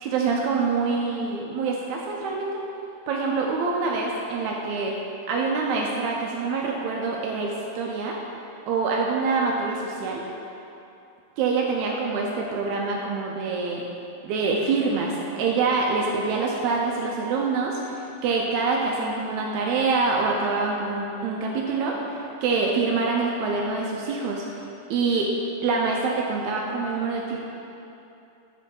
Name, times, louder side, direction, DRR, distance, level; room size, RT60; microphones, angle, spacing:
voice 1, 0.0-2.6 3.1-5.0 5.3-8.2 8.7-10.2 11.4-13.8 14.2-25.3 25.6-27.4, right 4 dB, 80° right, -1 dB, 1.7 m, -25 dB
9.9 x 3.6 x 3.8 m, 2.8 s
omnidirectional pair, 3.8 m